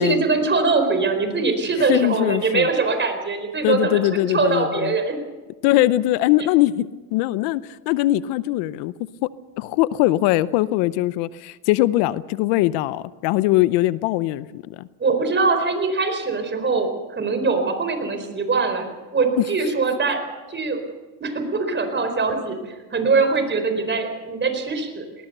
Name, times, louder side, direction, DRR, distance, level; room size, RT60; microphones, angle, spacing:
voice 1, 0.0-4.0 4.3-5.2 15.0-18.9 19.1-20.2 20.5-20.8 21.2-22.6 22.9-25.0, right 4 dB, 25° right, 7 dB, 4.4 m, -22 dB
voice 2, 1.8-2.7 3.6-5.0 5.6-8.9 9.2-9.3 9.6-14.9 19.4-19.5, left 16 dB, 80° left, 17 dB, 0.8 m, -21 dB
19.5 x 19.5 x 6.8 m, 1.2 s
supercardioid pair, 105°, 42 cm